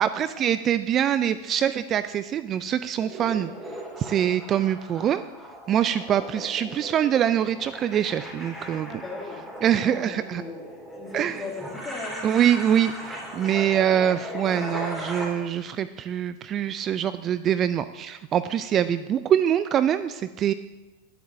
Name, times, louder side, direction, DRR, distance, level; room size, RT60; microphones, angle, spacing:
voice 1, 0.0-3.5 4.0-5.2 5.7-8.9 9.6-10.4 11.1-11.4 12.2-20.5, right 10 dB, 35° right, 13 dB, 0.3 m, -24 dB
sound 1, 3.0-15.3, equal, 10° right, 4.1 m, -38 dB
voice 2, 8.8-9.5 9.8-10.6 10.9-12.3, left 3 dB, 15° left, -1 dB, 2.6 m, -37 dB
17.0 x 8.7 x 2.7 m, 1.2 s
hypercardioid pair, 95°, 0 cm